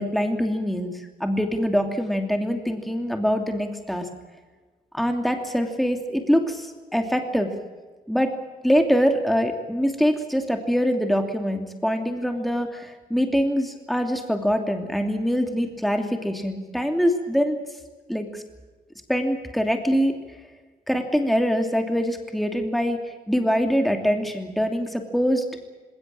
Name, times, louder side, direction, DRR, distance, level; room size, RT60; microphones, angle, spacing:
voice 1, 0.0-4.1 4.9-7.5 8.1-8.3 8.6-17.6 18.1-18.4 19.1-20.2 20.9-25.4, equal, ahead, 5 dB, 2.8 m, -24 dB
20.0 x 18.5 x 8.7 m, 1.3 s
cardioid pair, 75°, 17 cm